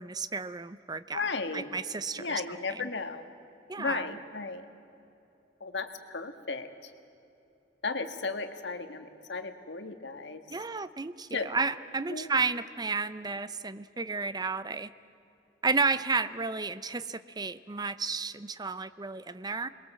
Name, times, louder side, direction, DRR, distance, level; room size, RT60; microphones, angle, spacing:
voice 1, 0.0-1.2 1.5-2.4 2.7-2.9 3.7-4.1 10.5-14.9 15.6-19.7, right 4 dB, 25° right, 13 dB, 0.7 m, -32 dB
voice 2, 1.1-1.7 2.2-3.2 3.8-4.6 5.6-6.9 7.8-10.4 11.3-11.5 12.1-12.3, left 4 dB, 75° left, 7 dB, 1.7 m, -35 dB
28.0 x 22.0 x 7.7 m, 2.8 s
head